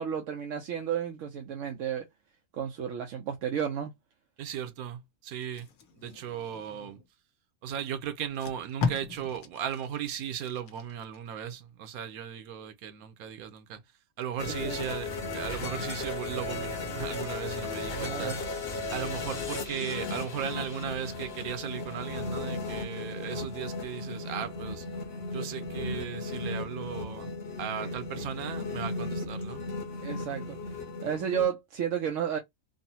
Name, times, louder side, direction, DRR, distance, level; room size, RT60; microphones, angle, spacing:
voice 1, 0.0-2.1 2.5-3.9 14.5-15.0 17.9-18.4 27.8-28.3 30.0-30.6 31.0-32.4, right 8 dB, 70° right, 0.9 m, -32 dB
voice 2, 4.4-5.7 5.9-7.0 7.6-13.8 14.2-18.4 18.9-24.8 25.3-27.3 27.6-29.6, right 9 dB, 90° right, 1.1 m, -37 dB
Packing tape duct tape, 5.4-7.1 7.8-7.9 8.2-11.2 11.6-11.8, left 5 dB, 85° left, 1.2 m, -37 dB
sound 1, 14.4-31.5, left 3 dB, 50° left, 0.9 m, -36 dB
3.8 x 2.0 x 2.7 m
omnidirectional pair, 1.5 m